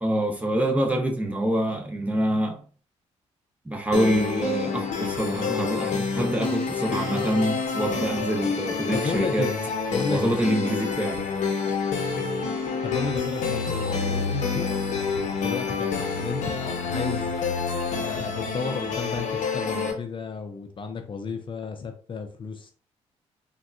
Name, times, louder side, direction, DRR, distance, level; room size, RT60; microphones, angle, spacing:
voice 1, 0.0-2.6 3.6-9.5 10.1-11.2, right 1 dB, 10° right, 0.8 m, -26 dB
sound 1, 3.9-19.9, left 5 dB, 70° left, 0.7 m, -28 dB
voice 2, 8.9-10.4 12.8-14.7 15.4-17.4 18.0-22.7, left 5 dB, 40° left, 0.5 m, -32 dB
3.5 x 2.2 x 2.4 m
cardioid pair, 70°, 13 cm